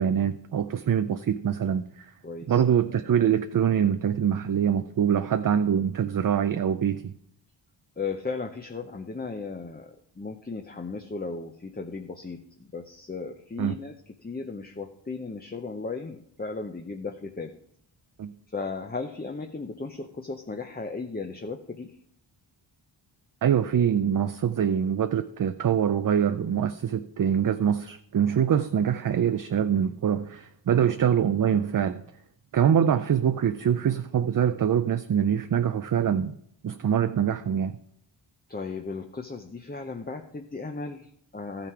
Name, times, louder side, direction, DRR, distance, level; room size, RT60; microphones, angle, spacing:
voice 1, 0.0-2.1 2.5-7.1 13.6-13.7 18.2-18.3 23.4-32.0 32.5-36.3 36.6-37.8, right 8 dB, 45° right, 0.5 m, -24 dB
voice 2, 2.2-2.6 8.0-13.9 14.2-17.6 18.5-22.0 30.7-30.9 38.5-41.7, left 4 dB, 20° left, 0.7 m, -36 dB
13.5 x 5.9 x 4.7 m
wide cardioid pair, 80°, 47 cm